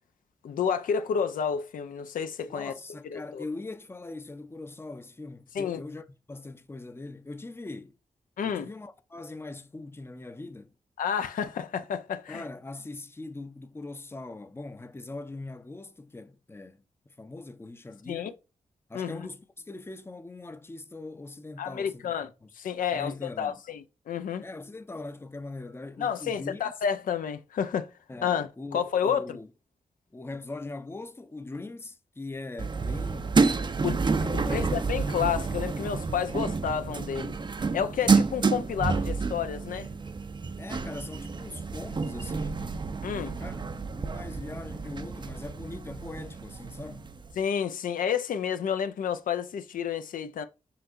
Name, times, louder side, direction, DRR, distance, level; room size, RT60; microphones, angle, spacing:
voice 1, 0.4-2.7 3.1-3.4 5.5-5.8 8.4-8.7 11.0-12.4 18.1-18.3 18.9-19.3 21.6-22.3 22.5-24.4 26.0-27.9 28.2-29.4 33.8-34.0 34.3-37.3 37.7-39.9 43.0-43.3 47.4-50.5, left 7 dB, 85° left, 0.4 m, -30 dB
voice 2, 2.5-8.0 8.4-10.7 11.4-11.5 12.3-18.3 18.9-22.5 22.9-23.6 24.4-26.7 28.1-29.5 30.1-33.5 34.1-35.2 40.6-42.7 43.0-43.6 43.9-47.1, left 2 dB, 15° left, 0.5 m, -41 dB
sound 1, 32.6-47.4, right 4 dB, 35° right, 0.5 m, -29 dB
5.7 x 2.8 x 2.5 m
cardioid pair, 60°, 14 cm